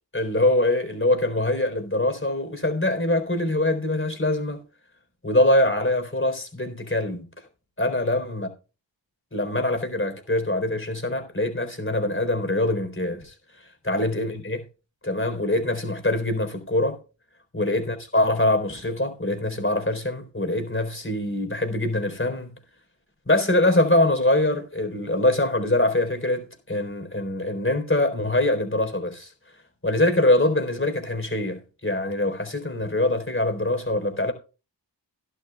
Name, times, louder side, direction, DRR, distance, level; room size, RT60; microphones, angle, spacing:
voice 1, 0.1-4.6 5.2-7.3 7.8-8.5 9.3-14.6 15.0-17.0 17.5-22.5 23.3-29.3 29.8-34.3, left 1 dB, 25° left, 3.9 m, -24 dB
17.5 x 11.5 x 2.3 m
cardioid pair, 45°, 45 cm